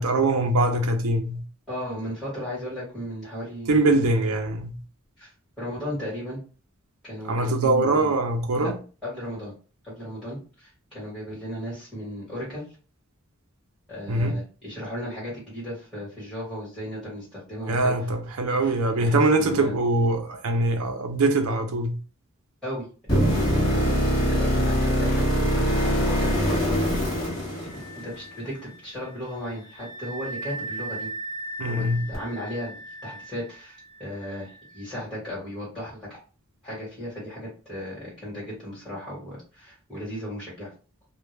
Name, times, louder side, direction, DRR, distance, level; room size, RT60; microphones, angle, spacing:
voice 1, 0.0-1.4 3.7-4.8 7.2-8.8 14.1-14.3 17.7-22.0 31.6-32.1, right 2 dB, 80° right, 0.5 m, -23 dB
voice 2, 1.7-4.2 5.2-5.3 5.6-6.4 7.0-8.1 8.6-8.7 9.0-9.5 9.8-12.7 13.9-17.9 18.6-18.7 19.0-19.8 22.6-27.0 27.4-31.1 31.6-32.8 33.0-36.2 36.6-40.7, equal, ahead, 1.3 m, -36 dB
sound 1, 23.1-28.2 32.1-32.2, equal, 20° left, 1.2 m, -23 dB
Wind instrument woodwind instrument, 27.5-34.9, right 2 dB, 50° left, 1.0 m, -39 dB
2.2 x 2.1 x 3.1 m
head